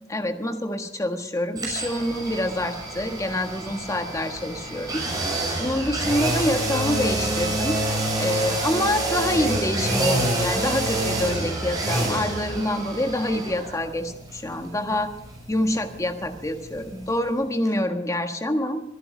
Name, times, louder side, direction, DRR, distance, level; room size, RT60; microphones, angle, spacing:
voice 1, 0.1-5.0 5.6-7.8 8.2-15.1 15.5-18.8, left 1 dB, 15° left, 7 dB, 1.5 m, -26 dB
sound 1, 1.6-17.4 17.7-17.8, right 2 dB, 20° right, 6.2 m, -28 dB
23.5 x 11.0 x 5.1 m, 0.85 s
head